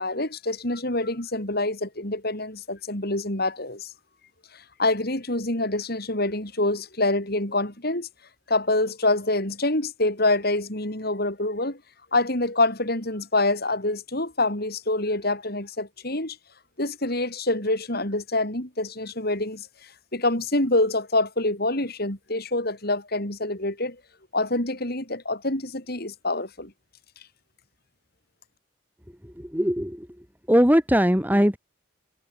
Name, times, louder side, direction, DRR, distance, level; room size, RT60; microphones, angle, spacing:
voice 1, 0.0-3.9 4.5-8.1 8.5-11.8 12.1-16.4 16.8-19.7 20.1-24.0 24.3-26.7, left 2 dB, 50° left, 5.2 m, -26 dB
voice 2, 29.4-30.1 30.5-31.6, equal, 10° right, 6.1 m, -20 dB
head